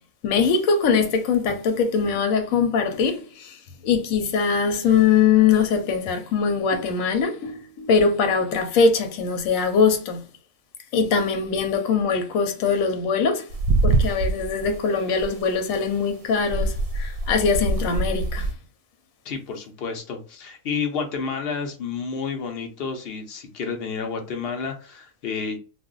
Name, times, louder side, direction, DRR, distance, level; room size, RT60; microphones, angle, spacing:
voice 1, 0.2-3.6 3.8-10.2 10.9-13.5 13.8-18.5, left 5 dB, 85° left, 1.1 m, -22 dB
sound 1, 13.5-14.8 15.2-15.4 16.5-18.5, right 2 dB, 90° right, 1.0 m, -24 dB
voice 2, 19.2-25.6, left 5 dB, 55° left, 0.8 m, -30 dB
2.5 x 2.0 x 3.7 m
omnidirectional pair, 1.4 m